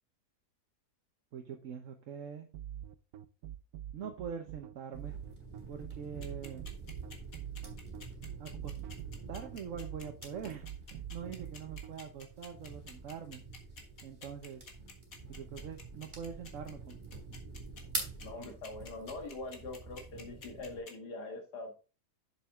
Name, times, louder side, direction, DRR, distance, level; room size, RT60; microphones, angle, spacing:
voice 1, 1.3-2.5 3.9-5.2 5.7-6.6 8.4-8.7 9.3-13.4 14.0-14.6 15.3-17.0, right 7 dB, 60° right, 4 dB, 1.2 m, -44 dB
sound 1, 2.5-11.9, right 11 dB, 75° right, 1.1 m, -44 dB
sound 2, 4.9-20.8, right 2 dB, 30° right, 3.2 m, -47 dB
sound 3, 6.2-20.9, left 4 dB, 60° left, 2.1 m, -50 dB
voice 2, 18.2-21.7, left 2 dB, 85° left, 4 dB, 2.3 m, -43 dB
7.3 x 7.3 x 3.6 m, 0.34 s
omnidirectional pair, 1.7 m